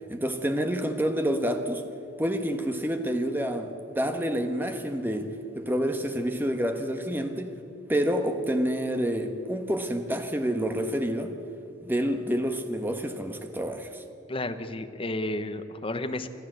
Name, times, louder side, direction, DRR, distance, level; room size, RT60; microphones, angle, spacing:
voice 1, 0.1-1.8 2.2-7.6 7.9-11.3 11.8-14.0, equal, 10° right, 6 dB, 1.3 m, -28 dB
voice 2, 14.3-16.3, left 1 dB, 30° left, 9 dB, 0.9 m, -32 dB
25.5 x 13.5 x 7.9 m, 2.7 s
head